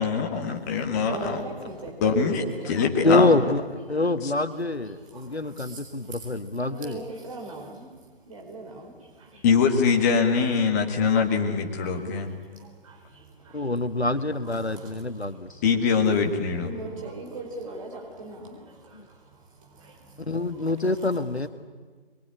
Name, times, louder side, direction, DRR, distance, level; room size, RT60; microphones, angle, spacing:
voice 1, 0.0-1.4 2.0-3.3 4.2-4.3 9.4-12.3 15.6-16.7, left 5 dB, 15° left, 3 dB, 1.7 m, -23 dB
voice 2, 0.6-2.9 4.9-6.4 6.6-8.0 8.3-9.4 11.5-11.6 11.8-12.2 12.5-15.6 16.6-21.2, right 2 dB, 30° right, 1 dB, 4.5 m, -41 dB
voice 3, 3.0-3.6 3.9-7.0 13.5-15.5 18.9-19.0 20.3-21.5, left 2 dB, 90° left, 11 dB, 1.5 m, -25 dB
23.5 x 22.0 x 10.0 m, 1.5 s
figure-of-eight pair, 150°, 31 cm